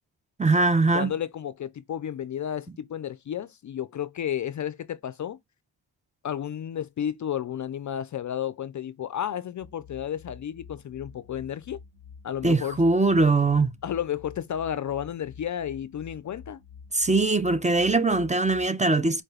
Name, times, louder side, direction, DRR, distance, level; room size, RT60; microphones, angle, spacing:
voice 1, 0.4-1.1 12.4-13.7 16.9-19.2, right 3 dB, 15° right, 0.5 m, -21 dB
voice 2, 0.9-5.4 6.2-11.8 12.2-12.8 13.8-16.6, left 9 dB, 45° left, 0.4 m, -32 dB
sound 1, 9.6-18.7, left 6 dB, 90° right, 2.1 m, -48 dB
4.4 x 2.2 x 3.2 m
cardioid pair, 60°, 43 cm